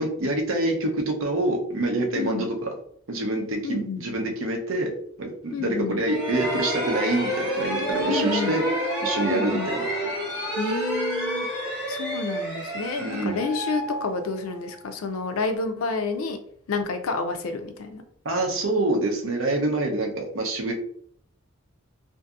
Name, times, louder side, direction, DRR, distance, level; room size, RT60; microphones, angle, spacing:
voice 1, 0.0-2.7 3.1-4.9 5.2-8.6 9.0-9.8 13.0-13.4 18.2-20.7, right 2 dB, 75° right, 2 dB, 0.6 m, -26 dB
voice 2, 2.1-2.5 3.6-4.0 5.5-6.0 8.0-8.5 9.2-9.7 10.6-11.5 11.9-16.4 16.7-18.0, left 4 dB, 90° left, 8 dB, 0.4 m, -29 dB
sound 1, 6.0-14.7, equal, 55° right, 1.3 m, -29 dB
2.6 x 2.5 x 2.4 m, 0.63 s
head